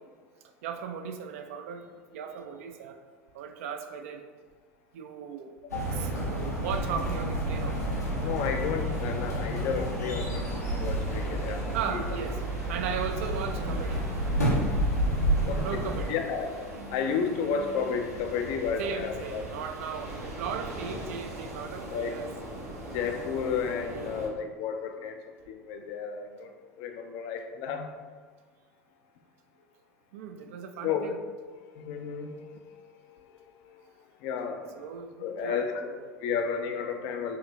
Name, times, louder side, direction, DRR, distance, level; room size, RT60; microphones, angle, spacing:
voice 1, 0.6-3.0 3.3-4.2 4.9-5.5 6.0-7.9 11.7-12.4 12.7-14.0 14.5-14.6 15.6-16.2 18.8-22.3 30.1-31.2 34.7-36.1, right 7 dB, 60° right, 6 dB, 0.4 m, -37 dB
sound 1, 5.7-16.1, right 1 dB, 85° left, 0.9 m, -30 dB
sound 2, 7.5-24.3, right 1 dB, 75° right, 0.8 m, -41 dB
voice 2, 8.2-10.4 10.8-12.0 15.5-19.4 21.8-22.2 22.9-25.2 25.5-26.5 26.8-28.0 30.8-31.2 31.5-33.9 34.2-34.7 35.2-37.4, left 6 dB, 50° left, 5 dB, 0.5 m, -32 dB
4.9 x 2.8 x 2.8 m, 1.5 s
figure-of-eight pair, 75°, 9 cm